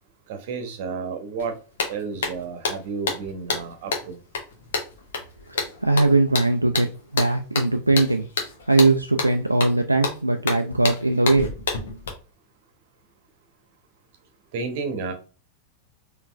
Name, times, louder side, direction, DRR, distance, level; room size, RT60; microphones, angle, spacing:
voice 1, 0.3-1.5 1.9-4.2 14.5-15.1, right 5 dB, 50° right, 6 dB, 0.8 m, -31 dB
sound 1, 1.4-1.5 1.8-12.1, left 4 dB, 60° left, 0.9 m, -29 dB
voice 2, 5.5-8.3 8.7-11.5, right 2 dB, 85° right, 5 dB, 0.3 m, -20 dB
4.1 x 3.0 x 2.4 m, 0.35 s
figure-of-eight pair, 90°, 0 cm